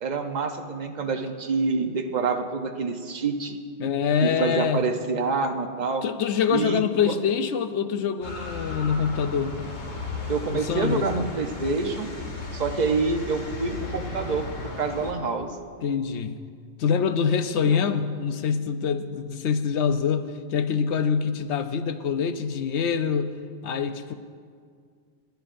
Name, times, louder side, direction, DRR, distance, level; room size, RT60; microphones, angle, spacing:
voice 1, 0.0-3.6 4.2-6.0 6.5-7.1 10.3-12.1 12.5-14.5 14.8-15.6 17.6-17.8, right 4 dB, 40° right, 4 dB, 0.8 m, -27 dB
voice 2, 3.8-4.9 6.0-9.6 10.5-11.1 15.8-16.4 16.8-23.3 23.6-24.1, left 7 dB, 70° left, 10 dB, 0.9 m, -25 dB
sound 1, 8.2-15.1, left 3 dB, 90° left, 2.0 m, -35 dB
22.0 x 10.5 x 2.6 m, 2.1 s
omnidirectional pair, 1.3 m